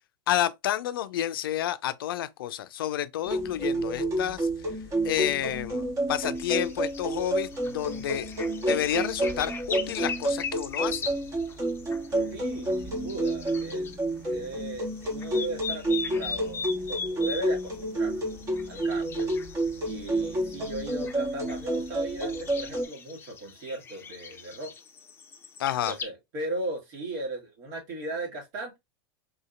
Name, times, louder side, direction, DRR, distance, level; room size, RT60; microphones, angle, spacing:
voice 1, 0.3-4.5 5.0-8.3 8.7-11.1 25.6-26.0, left 12 dB, 85° left, 0.4 m, -30 dB
sound 1, 3.3-22.9, right 1 dB, 30° right, 1.1 m, -30 dB
sound 2, 6.4-13.9 14.3-26.0, left 5 dB, 20° left, 0.6 m, -40 dB
voice 2, 12.3-14.0 14.3-18.1 18.7-19.3 19.8-24.7 25.9-28.8, right 2 dB, 60° right, 1.8 m, -37 dB
3.5 x 2.8 x 2.4 m
hypercardioid pair, 110°, 12 cm